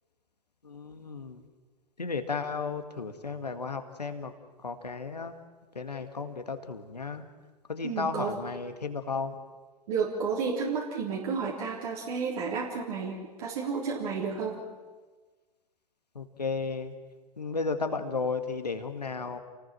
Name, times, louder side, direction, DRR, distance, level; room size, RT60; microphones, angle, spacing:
voice 1, 0.6-1.5 2.0-4.3 4.6-5.4 5.8-7.2 7.7-9.4 16.2-16.9 17.4-19.4, left 4 dB, 90° left, 7 dB, 1.8 m, -34 dB
voice 2, 7.8-8.3 9.9-14.6, right 5 dB, 60° right, -2 dB, 3.8 m, -31 dB
28.5 x 19.0 x 6.2 m, 1.3 s
figure-of-eight pair, 90°, 20 cm